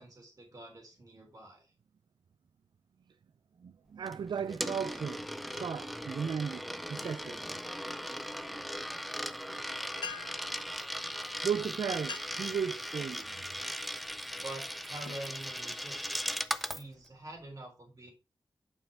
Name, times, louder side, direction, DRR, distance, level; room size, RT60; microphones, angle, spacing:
voice 1, 0.0-1.7 14.3-16.1 16.6-18.1, right 2 dB, 45° right, 3.3 m, -46 dB
voice 2, 3.6-7.4 11.4-13.7, right 7 dB, 65° right, 0.4 m, -36 dB
Coin (dropping), 4.1-16.8, equal, ahead, 0.4 m, -38 dB
sound 1, 9.7-9.8 9.9-10.5 11.4-11.6 11.9-12.5 13.0-13.4 14.0-14.2 14.8-16.0, left 6 dB, 75° left, 0.5 m, -45 dB
7.0 x 5.6 x 3.5 m
wide cardioid pair, 85°, 8 cm